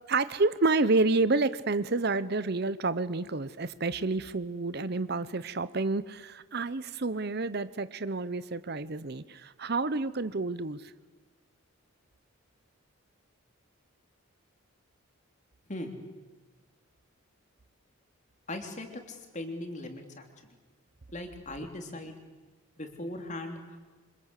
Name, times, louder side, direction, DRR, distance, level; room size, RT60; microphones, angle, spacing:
voice 1, 0.1-10.9, right 3 dB, 50° right, 0.8 m, -29 dB
voice 2, 18.5-20.3 21.1-22.1 22.8-23.8, left 1 dB, 35° left, 3.3 m, -39 dB
28.0 x 25.5 x 8.3 m
head